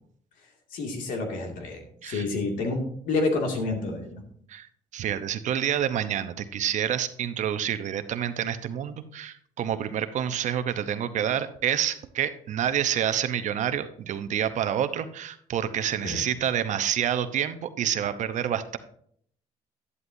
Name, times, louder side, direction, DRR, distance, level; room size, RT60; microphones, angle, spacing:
voice 1, 0.7-4.2 16.0-16.3, left 3 dB, 75° left, 2 dB, 2.3 m, -29 dB
voice 2, 4.9-18.8, right 9 dB, 60° right, 11 dB, 0.8 m, -28 dB
11.0 x 11.0 x 2.7 m, 0.65 s
supercardioid pair, 80°, 14 cm